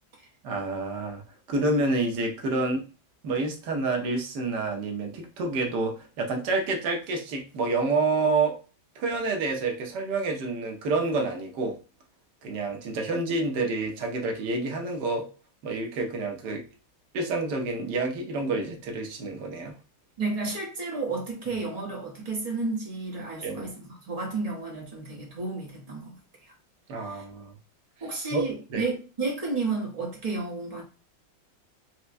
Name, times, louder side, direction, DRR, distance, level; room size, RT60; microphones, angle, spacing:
voice 1, 0.4-1.2 1.5-2.8 3.2-8.6 8.9-11.8 12.4-15.2 15.6-16.7 17.1-19.7 23.4-23.7 26.9-27.5 28.3-28.4 28.7-28.8, right 3 dB, 65° right, 1.3 m, -28 dB
voice 2, 20.2-26.2 27.1-27.2 28.0-30.8, right 3 dB, 35° right, 0.6 m, -32 dB
4.4 x 2.1 x 2.5 m
omnidirectional pair, 2.2 m